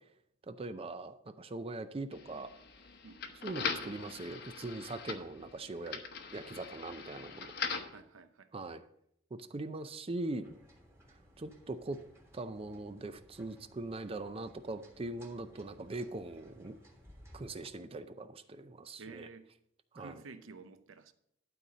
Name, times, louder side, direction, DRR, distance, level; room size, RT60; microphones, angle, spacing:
voice 1, 0.5-2.5 3.4-6.0 6.3-7.5 8.5-8.8 9.3-10.5 11.4-12.0 12.3-16.8 17.3-19.3 19.9-20.2, right 2 dB, 30° right, 0.5 m, -41 dB
sound 1, 2.1-8.0, left 5 dB, 55° left, 0.9 m, -41 dB
voice 2, 3.0-3.4 7.9-8.5 19.0-19.5 20.0-21.1, right 4 dB, 85° right, 0.7 m, -51 dB
sound 2, 10.4-17.7, equal, 15° right, 1.6 m, -60 dB
12.0 x 4.1 x 6.6 m
head